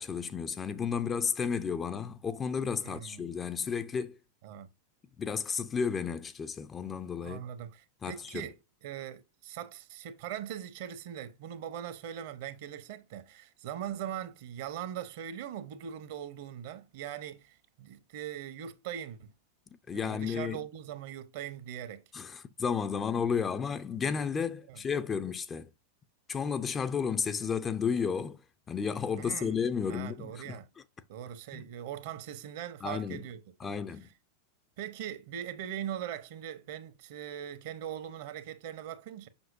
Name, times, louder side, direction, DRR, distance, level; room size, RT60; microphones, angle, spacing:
voice 1, 0.0-4.2 5.2-7.4 8.0-8.5 19.9-20.6 22.1-25.7 26.3-28.4 28.7-30.6 31.5-31.6 32.8-33.2 33.6-34.1, left 6 dB, 20° left, 0.5 m, -32 dB
voice 2, 2.8-3.3 4.4-4.7 7.2-19.3 19.9-22.0 24.7-24.8 29.2-29.6 29.9-30.7 31.1-33.7 34.8-39.3, right 10 dB, 50° right, 0.9 m, -41 dB
7.2 x 5.9 x 2.6 m
figure-of-eight pair, 90°, 0 cm